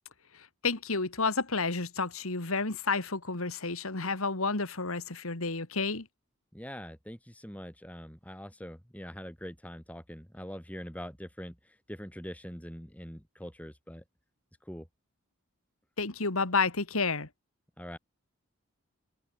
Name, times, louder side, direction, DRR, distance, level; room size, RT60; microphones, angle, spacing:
voice 1, 0.6-6.1 16.0-17.3, left 4 dB, 75° left, 2.4 m, -30 dB
voice 2, 6.5-14.0 14.6-14.9 17.8-18.0, equal, 5° left, 5.2 m, -43 dB
open air
head